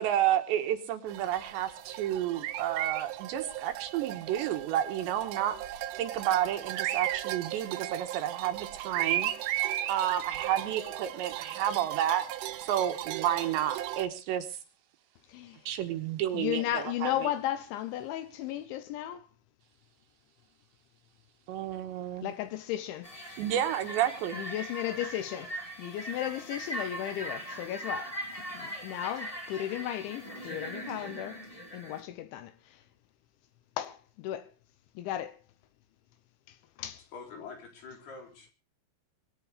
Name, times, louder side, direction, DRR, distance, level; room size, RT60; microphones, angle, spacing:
voice 1, 0.0-5.6 6.0-9.3 9.9-12.3 12.7-14.5 15.7-17.3 21.5-22.3 23.4-24.4, right 11 dB, 75° right, 3.2 m, -30 dB
sound 1, 1.1-14.1, right 13 dB, 90° right, 3.7 m, -36 dB
voice 2, 15.3-15.6 16.3-19.3 22.2-23.1 24.3-25.5 25.8-28.1 28.5-31.4 31.7-32.8 33.8-34.5 35.0-35.4 36.5-37.0, left 12 dB, 80° left, 3.1 m, -35 dB
sound 2, 23.0-32.0, right 1 dB, 10° left, 1.5 m, -40 dB
voice 3, 37.1-38.5, left 5 dB, 55° left, 5.5 m, -45 dB
24.5 x 9.0 x 4.9 m
omnidirectional pair, 5.6 m